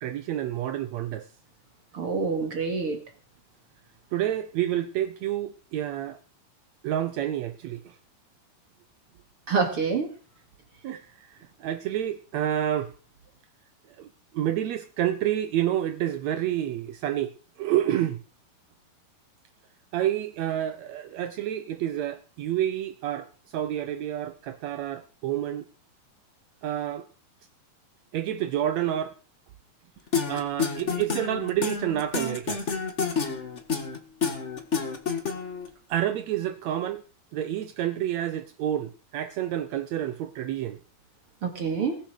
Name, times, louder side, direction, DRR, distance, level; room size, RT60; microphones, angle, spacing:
voice 1, 0.0-1.3 4.1-6.2 6.8-8.0 10.8-12.9 14.0-14.1 14.3-18.2 19.9-25.7 26.6-27.1 28.1-29.1 30.3-32.7 35.9-37.0 37.3-40.8, right 11 dB, 80° right, 1.6 m, -29 dB
voice 2, 1.9-3.0 9.5-10.1 41.4-42.0, right 5 dB, 45° right, 2.6 m, -26 dB
sound 1, 30.1-35.7, left 5 dB, 35° left, 1.1 m, -29 dB
20.5 x 7.4 x 6.5 m
omnidirectional pair, 4.2 m